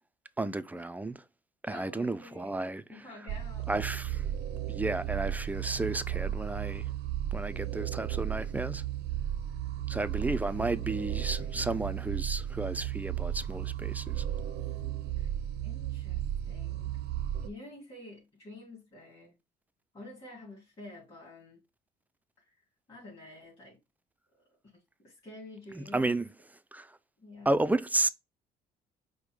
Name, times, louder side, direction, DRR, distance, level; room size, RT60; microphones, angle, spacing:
voice 1, 0.4-1.1 1.6-2.8 3.7-4.3 4.7-6.9 7.3-8.8 9.9-14.2 25.8-26.3 26.7-26.9 27.5-28.1, right 2 dB, 10° right, 0.3 m, -32 dB
voice 2, 1.7-2.5 2.9-3.7 9.9-10.0 10.3-11.7 15.2-15.3 15.6-17.0 17.4-19.3 19.9-21.6 22.4-22.5 22.9-23.8 24.6-24.7 25.0-26.1 27.2-27.6, left 2 dB, 40° left, 2.9 m, -49 dB
sound 1, 3.3-17.5, right 11 dB, 80° right, 0.6 m, -34 dB
5.1 x 2.1 x 4.7 m
cardioid pair, 110°, 17 cm